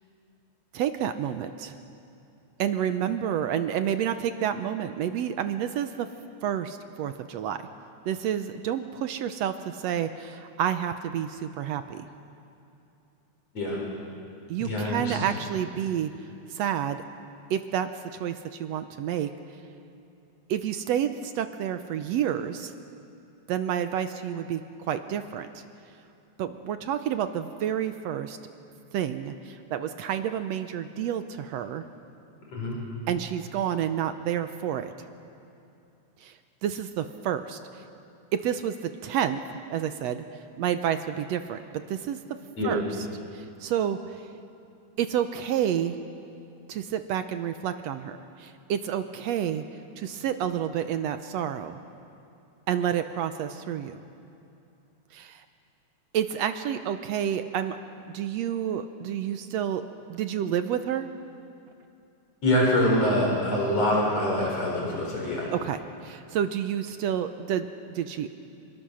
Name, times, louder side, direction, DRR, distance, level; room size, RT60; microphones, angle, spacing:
voice 1, 0.7-1.8 2.6-6.1 6.4-7.6 8.1-12.1 14.5-16.1 16.5-17.0 17.5-19.3 20.5-22.7 23.5-25.6 26.4-28.4 28.9-31.8 33.1-34.9 36.2-37.8 38.3-39.4 39.7-40.2 40.6-42.2 42.6-42.8 43.3-44.2 45.0-46.0 46.7-49.6 50.0-51.8 52.7-54.0 55.1-55.4 56.1-57.8 58.1-59.8 60.1-61.1 65.5-68.3, right 9 dB, 75° right, 9 dB, 1.8 m, -29 dB
voice 2, 14.6-15.2 32.5-32.8 42.6-42.8 62.4-65.5, left 1 dB, 60° left, -3 dB, 5.7 m, -25 dB
27.0 x 22.0 x 6.3 m, 2.7 s
omnidirectional pair, 3.3 m